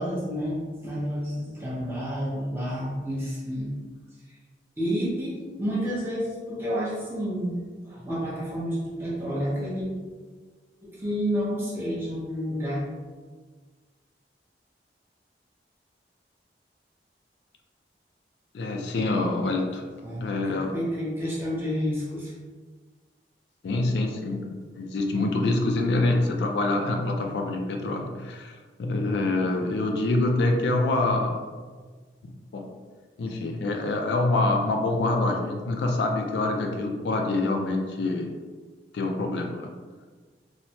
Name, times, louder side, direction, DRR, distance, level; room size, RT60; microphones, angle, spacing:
voice 1, 0.0-3.8 4.8-7.6 7.8-9.9 10.8-12.8 20.0-22.3, equal, 15° right, -7 dB, 0.7 m, -30 dB
voice 2, 18.5-19.8 20.2-20.7 23.6-28.5 28.8-31.4 32.2-32.7 33.2-38.3 38.9-39.7, left 2 dB, 75° left, 2 dB, 0.3 m, -26 dB
3.2 x 2.0 x 2.7 m, 1.4 s
head